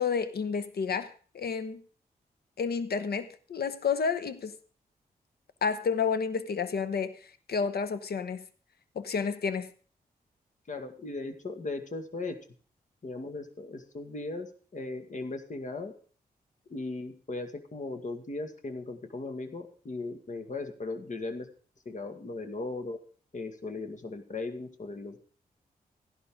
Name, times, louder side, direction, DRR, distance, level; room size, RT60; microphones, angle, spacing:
voice 1, 0.0-1.8 2.6-4.5 5.6-7.2 7.5-8.5 8.9-9.7, left 6 dB, 70° left, 1.1 m, -30 dB
voice 2, 10.7-12.4 13.0-15.9 16.7-21.5 21.9-23.0 23.3-25.2, left 3 dB, 50° left, 2.0 m, -37 dB
15.0 x 11.5 x 3.8 m
cardioid pair, 55°, 17 cm